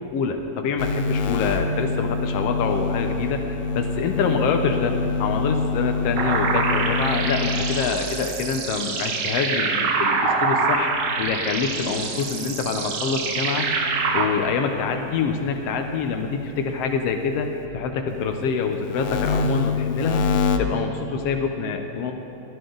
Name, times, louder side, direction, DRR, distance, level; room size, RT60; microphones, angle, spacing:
voice 1, 0.1-3.4 3.7-13.7 14.1-17.5 17.7-20.2 20.6-22.1, left 5 dB, 90° left, 4 dB, 1.3 m, -26 dB
sound 1, 0.8-8.3 10.3-12.4 12.9-17.7 18.1-20.6, left 4 dB, 70° left, 1.9 m, -28 dB
sound 2, 6.2-14.3, right 4 dB, 60° right, 2.1 m, -25 dB
22.5 x 15.0 x 4.0 m, 3.0 s
omnidirectional pair, 4.1 m